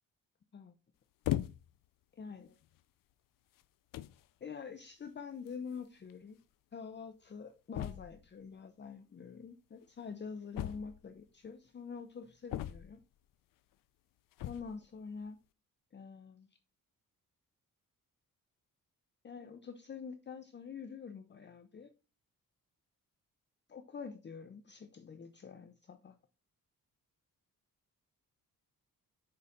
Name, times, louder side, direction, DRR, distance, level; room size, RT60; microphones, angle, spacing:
sound 1, 1.2-1.9 2.6-2.8 3.6-3.7 3.9-4.2 5.5-5.6 5.8-5.9 6.1-6.2 7.7-8.3 10.5-11.2 12.5-13.1 14.3-14.8, left 13 dB, 65° left, 0.5 m, -38 dB
voice 1, 2.2-2.6 4.4-6.4 6.7-13.0 14.4-15.4 15.9-16.5 19.2-21.9 23.7-26.2, left 5 dB, 30° left, 0.7 m, -46 dB
6.7 x 4.9 x 4.0 m
cardioid pair, 115°, 35 cm